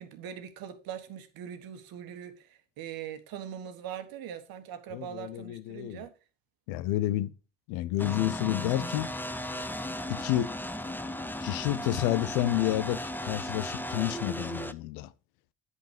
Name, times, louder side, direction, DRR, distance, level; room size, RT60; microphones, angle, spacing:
voice 1, 0.0-6.1, right 9 dB, 65° right, 1.5 m, -41 dB
voice 2, 4.9-6.0 6.7-7.3 7.7-9.1 10.1-10.6 11.4-15.1, left 14 dB, 75° left, 0.8 m, -30 dB
sound 1, 8.0-14.7, left 1 dB, 5° left, 0.8 m, -36 dB
9.7 x 5.6 x 5.1 m
hypercardioid pair, 55°, 38 cm